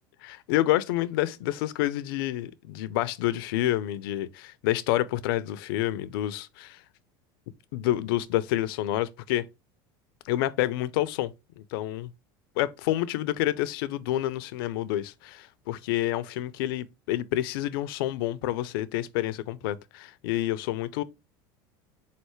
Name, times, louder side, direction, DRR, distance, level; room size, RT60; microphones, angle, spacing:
voice 1, 0.2-6.8 7.7-9.5 10.3-12.1 12.6-21.0, left 14 dB, 80° left, 0.4 m, -28 dB
4.1 x 3.2 x 3.0 m
supercardioid pair, 100°, 12 cm